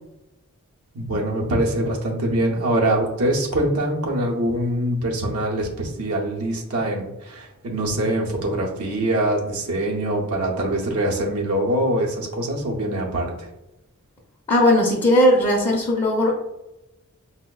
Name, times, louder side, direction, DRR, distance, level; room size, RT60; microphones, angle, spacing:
voice 1, 0.9-13.5, right 1 dB, 85° right, -2 dB, 0.7 m, -24 dB
voice 2, 14.5-16.3, left 1 dB, 25° left, -4 dB, 0.5 m, -17 dB
5.0 x 2.0 x 2.2 m, 0.93 s
head